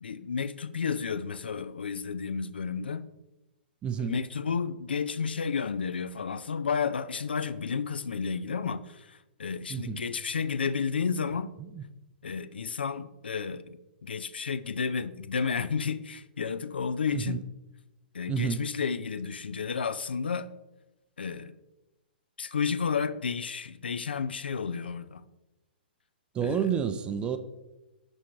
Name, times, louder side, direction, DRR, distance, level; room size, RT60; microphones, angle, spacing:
voice 1, 0.0-3.0 4.0-11.5 12.2-17.4 18.1-20.5 21.2-21.6 22.4-25.2 26.4-26.7, left 6 dB, 80° left, 0.3 m, -32 dB
voice 2, 3.8-4.2 9.7-10.0 11.7-11.8 17.1-17.4 18.3-18.6 26.3-27.4, right 7 dB, 20° right, 0.3 m, -29 dB
6.2 x 4.5 x 4.5 m
figure-of-eight pair, 120°, 5 cm